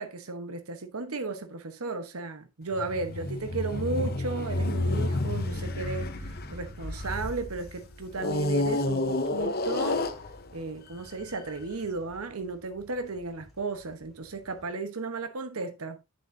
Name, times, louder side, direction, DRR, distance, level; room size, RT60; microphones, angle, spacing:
voice 1, 0.0-10.0 10.5-16.0, right 3 dB, 85° right, 1.1 m, -35 dB
sound 1, 2.7-7.4 8.2-10.7 11.4-11.5, left 2 dB, 45° left, 0.9 m, -30 dB
sound 2, 5.5-14.7, equal, ahead, 2.2 m, -45 dB
9.3 x 7.0 x 2.7 m
head